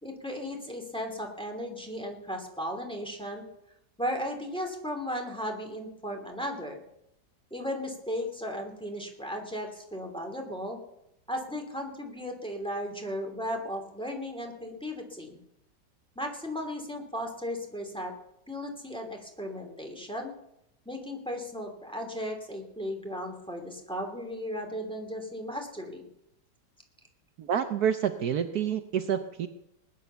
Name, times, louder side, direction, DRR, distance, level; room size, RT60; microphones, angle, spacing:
voice 1, 0.0-3.4 4.0-6.8 7.5-10.8 11.3-15.4 16.1-18.1 18.5-20.3 20.8-26.0, equal, 5° left, 2 dB, 2.9 m, -36 dB
voice 2, 27.4-29.5, right 8 dB, 65° right, 8 dB, 1.3 m, -28 dB
19.5 x 10.5 x 6.9 m, 0.83 s
omnidirectional pair, 1.9 m